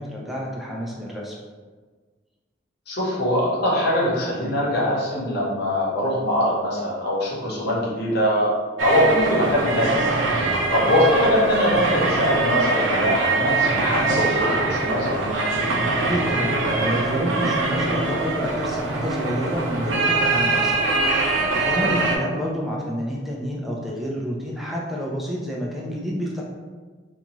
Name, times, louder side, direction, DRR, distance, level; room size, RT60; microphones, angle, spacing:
voice 1, 0.0-1.4 16.1-20.8 21.1-26.4, equal, ahead, -4 dB, 0.4 m, -29 dB
voice 2, 2.9-8.5 8.8-15.2 21.7-21.9, left 1 dB, 60° left, -6 dB, 1.0 m, -22 dB
sound 1, 8.8-22.2, right 3 dB, 85° right, 0.5 m, -23 dB
2.6 x 2.3 x 2.9 m, 1.4 s
head